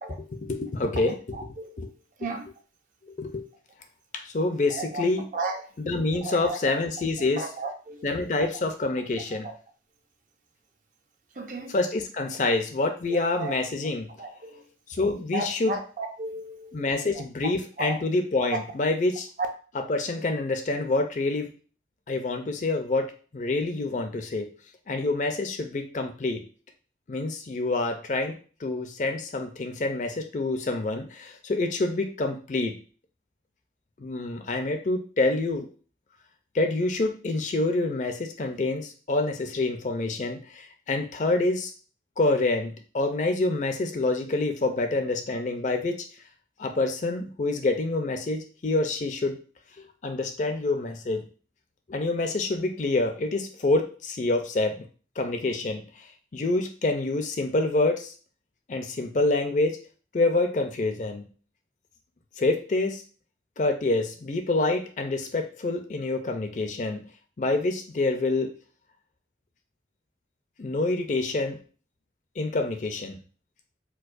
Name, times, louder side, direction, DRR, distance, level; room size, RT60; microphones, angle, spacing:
voice 1, 0.3-1.9 3.1-3.5 4.1-5.2 5.8-7.5 8.0-9.5 11.7-14.1 14.9-15.8 16.7-19.3 19.7-21.5 22.1-24.5 24.9-26.4 27.1-32.8 34.0-35.7 36.5-41.7 42.2-46.1 46.6-49.4 49.8-51.3 51.9-54.8 55.2-58.1 58.7-59.8 60.1-61.2 62.4-63.0 63.6-67.1 67.4-68.5 70.6-71.6 72.4-73.2, left 2 dB, 40° left, 0.4 m, -27 dB
voice 2, 1.3-1.8 2.2-2.5 4.7-5.0 5.3-5.6 6.1-6.6 7.4-8.1 8.4-8.5 9.4-9.5 11.4-11.7 13.1-13.5 14.2-14.6 15.3-16.8 17.8-18.0 18.5-18.6, right 3 dB, 45° right, 0.5 m, -34 dB
4.5 x 2.1 x 2.5 m
head